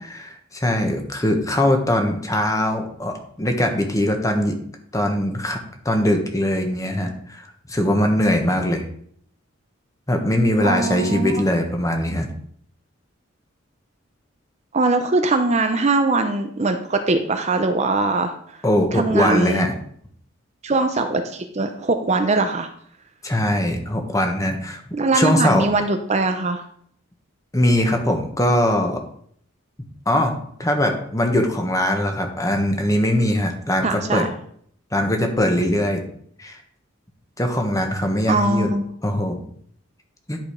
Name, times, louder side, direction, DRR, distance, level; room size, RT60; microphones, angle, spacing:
voice 1, 0.1-4.6 4.9-5.6 5.8-8.8 10.1-12.3 18.6-19.7 23.2-24.8 25.1-25.7 27.5-29.0 30.0-34.2 34.9-36.0 36.4-36.6 37.4-38.7 39.0-39.4 40.3-40.4, left 1 dB, 15° left, 4 dB, 1.3 m, -21 dB
voice 2, 10.6-11.4 14.7-18.3 18.9-19.7 20.6-22.7 24.9-26.6 33.8-34.3 38.3-38.9, right 3 dB, 35° right, 7 dB, 0.7 m, -21 dB
10.5 x 5.1 x 5.1 m, 0.63 s
head